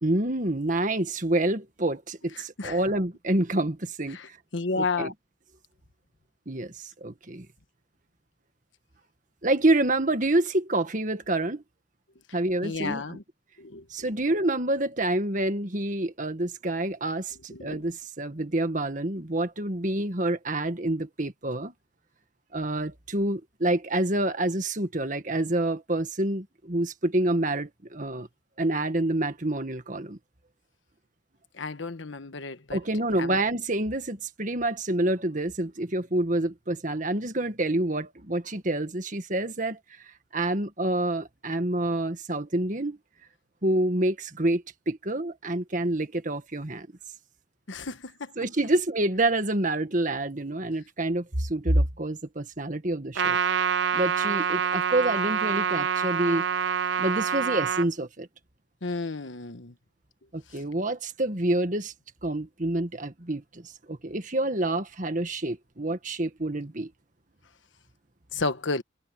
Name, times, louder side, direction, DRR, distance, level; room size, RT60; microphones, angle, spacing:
voice 1, 0.0-4.2 4.8-5.1 6.5-7.5 9.4-11.6 12.3-13.2 13.9-21.7 22.5-28.3 28.6-30.2 32.7-39.8 40.3-43.0 43.6-46.9 48.4-53.4 53.9-56.4 57.0-58.3 60.3-61.9 62.2-66.9, right 1 dB, 45° right, 1.8 m, -27 dB
voice 2, 4.1-5.1 12.6-13.2 13.6-13.8 17.5-17.8 31.6-32.8 33.2-33.4 47.7-48.3 58.8-59.7 68.3-68.8, left 3 dB, 80° left, 1.3 m, -32 dB
Trumpet, 53.2-57.9, right 7 dB, 65° right, 0.5 m, -26 dB
head